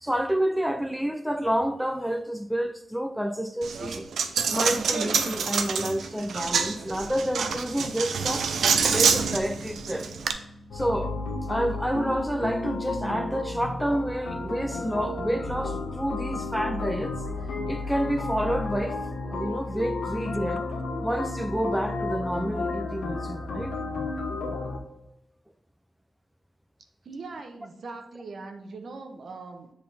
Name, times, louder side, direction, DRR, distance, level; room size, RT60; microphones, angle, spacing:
voice 1, 0.0-8.5 8.9-10.1 10.7-11.2 11.4-17.2 17.7-19.0 19.2-20.6 21.0-23.8, equal, ahead, 0.4 m, -29 dB
Coin (dropping), 3.6-10.3, right 6 dB, 85° right, 0.5 m, -26 dB
sound 1, 8.9-13.3, left 1 dB, 55° left, 1.5 m, -46 dB
sound 2, 10.7-24.8, left 3 dB, 85° left, 1.3 m, -32 dB
voice 2, 27.0-29.7, right 3 dB, 60° right, 0.9 m, -41 dB
7.3 x 3.8 x 4.1 m
cardioid pair, 95°, 0 cm